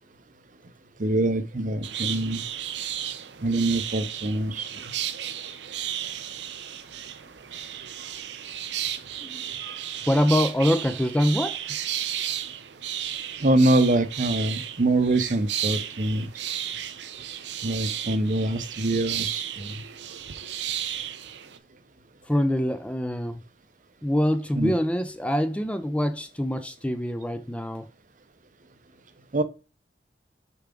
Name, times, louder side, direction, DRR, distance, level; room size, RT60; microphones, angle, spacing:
voice 1, 1.0-2.4 3.4-4.9 13.4-16.3 17.6-19.8 24.5-24.7 29.3-29.4, right 2 dB, 45° right, 0.7 m, -24 dB
sound 1, 1.8-21.6, right 10 dB, 80° right, 0.6 m, -34 dB
voice 2, 10.1-11.6 22.3-23.4 24.0-27.9, equal, 5° left, 0.5 m, -24 dB
6.8 x 4.7 x 3.8 m
head